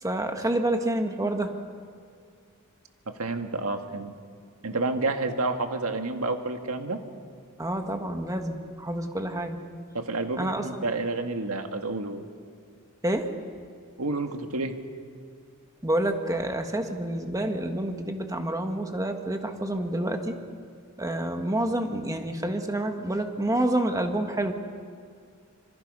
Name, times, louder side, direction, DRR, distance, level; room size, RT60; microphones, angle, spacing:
voice 1, 0.0-1.5 7.6-9.6 10.4-10.6 13.0-13.3 15.8-20.3 21.0-24.5, right 1 dB, 15° right, 5 dB, 1.7 m, -28 dB
voice 2, 3.1-4.1 4.6-7.0 9.9-12.3 14.0-14.8, right 3 dB, 70° right, 5 dB, 1.8 m, -29 dB
26.5 x 24.0 x 5.5 m, 2.2 s
head